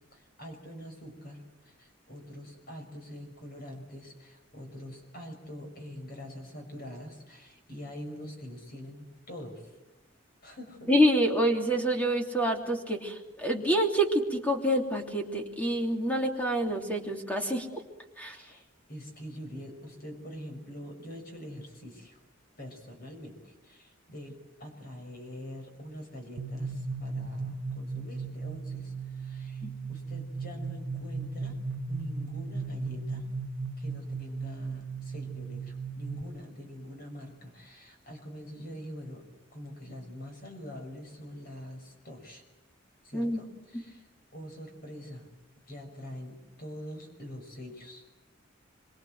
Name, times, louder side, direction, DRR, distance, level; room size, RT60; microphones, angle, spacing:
voice 1, 0.1-9.7 10.4-10.9 18.2-22.2 22.6-31.6 31.9-33.3 33.8-39.2 39.5-42.4 43.0-44.0 44.3-45.3 45.7-48.1, equal, 50° left, 4 dB, 6.1 m, -44 dB
voice 2, 10.9-17.8 18.2-18.4 29.6-29.7 43.1-43.4 43.7-43.8, equal, 10° left, 2 dB, 3.1 m, -27 dB
sound 1, 26.4-36.2, right 4 dB, 75° right, 1.4 m, -36 dB
26.0 x 24.0 x 7.9 m, 1.1 s
head